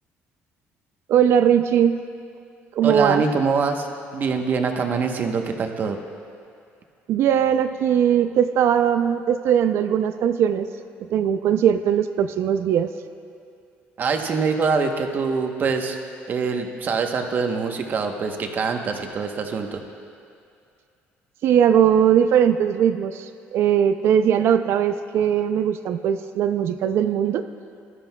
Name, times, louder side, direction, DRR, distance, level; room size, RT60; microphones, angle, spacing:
voice 1, 1.1-2.0 2.8-3.2 7.1-10.7 11.1-12.9 21.4-23.3 23.5-27.4, right 9 dB, 65° right, 9 dB, 0.4 m, -19 dB
voice 2, 2.8-3.9 4.1-6.0 14.0-16.0 16.3-19.8, right 5 dB, 45° right, 4 dB, 0.9 m, -24 dB
19.5 x 12.5 x 2.3 m, 2.4 s
cardioid pair, 125°, 5 cm